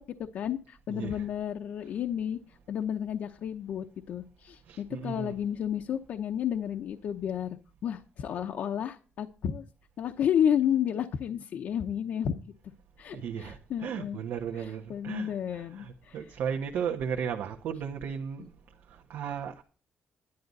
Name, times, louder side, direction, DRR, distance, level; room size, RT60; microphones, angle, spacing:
voice 1, 0.2-2.4 2.7-9.6 10.0-12.4 13.0-14.2 14.6-16.2, left 9 dB, 55° left, 0.7 m, -31 dB
voice 2, 0.9-1.2 4.7-5.4 13.1-18.5 18.9-19.6, right 7 dB, 85° right, 1.5 m, -35 dB
11.5 x 11.0 x 4.1 m
cardioid pair, 180°, 3 cm